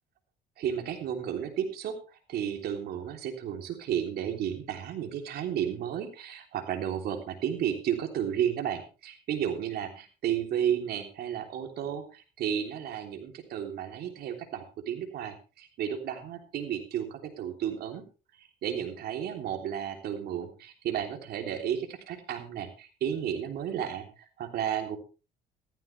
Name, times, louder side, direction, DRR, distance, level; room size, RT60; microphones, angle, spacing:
voice 1, 0.6-18.0 18.4-25.0, right 9 dB, 70° right, 5 dB, 3.4 m, -33 dB
15.0 x 13.5 x 3.4 m, 0.33 s
cardioid pair, 110°, 17 cm